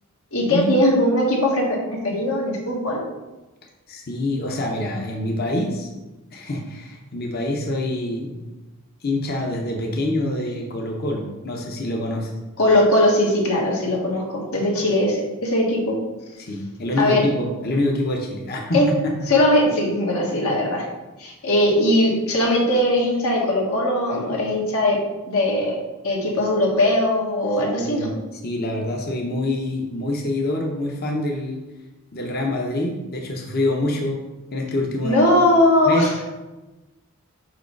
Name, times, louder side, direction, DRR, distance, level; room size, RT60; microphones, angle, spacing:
voice 1, 0.3-3.0 12.6-16.0 17.0-17.3 18.7-18.9 19.3-20.8 21.2-25.8 26.0-28.1 35.0-36.2, left 1 dB, 75° left, -2 dB, 1.6 m, -20 dB
voice 2, 3.9-5.9 6.3-8.4 9.0-12.3 16.4-19.2 27.8-31.6 32.1-34.2 34.5-35.2 35.8-36.1, left 1 dB, 45° left, 1 dB, 0.9 m, -26 dB
5.6 x 4.9 x 4.6 m, 1.1 s
head